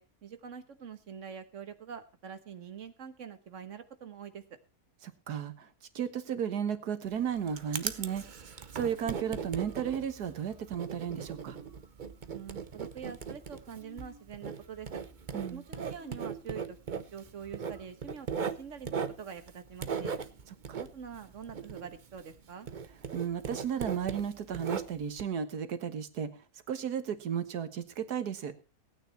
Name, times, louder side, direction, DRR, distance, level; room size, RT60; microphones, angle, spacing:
voice 1, 0.0-4.6 12.3-14.9 15.5-20.1 20.7-22.7, right 7 dB, 55° right, 10 dB, 1.6 m, -45 dB
voice 2, 5.0-5.7 6.0-8.2 8.7-11.6 15.3-15.6 20.7-20.8 23.1-26.3 26.7-28.5, right 8 dB, 85° right, 11 dB, 1.8 m, -34 dB
Writing, 7.0-22.4 22.7-25.2, right 6 dB, 40° right, 0.8 m, -39 dB
sound 1, 8.7-16.5 16.8-16.9 17.1-17.9, right 1 dB, 15° right, 3.0 m, -58 dB
17.5 x 9.4 x 4.4 m, 0.32 s
omnidirectional pair, 1.6 m